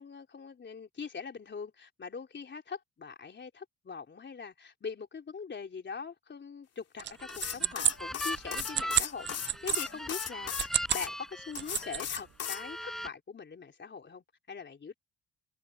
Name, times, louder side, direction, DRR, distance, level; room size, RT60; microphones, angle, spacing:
voice 1, 0.0-10.5 10.9-14.9, left 5 dB, 40° left, 4.1 m, -42 dB
sound 1, 7.0-12.0 12.5-13.1, equal, ahead, 5.6 m, -40 dB
sound 2, 7.0-9.8 10.4-11.1 11.4-12.2, right 10 dB, 40° right, 0.4 m, -31 dB
sound 3, 7.3-11.1 11.6-12.6, left 9 dB, 55° left, 2.3 m, -37 dB
cardioid pair, 90°, 30 cm